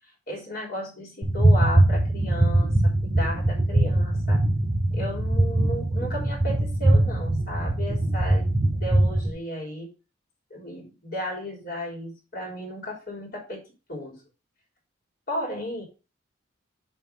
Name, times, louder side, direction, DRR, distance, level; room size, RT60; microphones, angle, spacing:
voice 1, 0.3-2.8 3.0-4.4 4.9-9.9 10.5-14.2 15.3-15.8, left 1 dB, 50° left, -1 dB, 3.7 m, -34 dB
sound 1, 1.2-9.3, right 1 dB, 20° right, 3.0 m, -22 dB
7.7 x 4.5 x 5.2 m, 0.31 s
head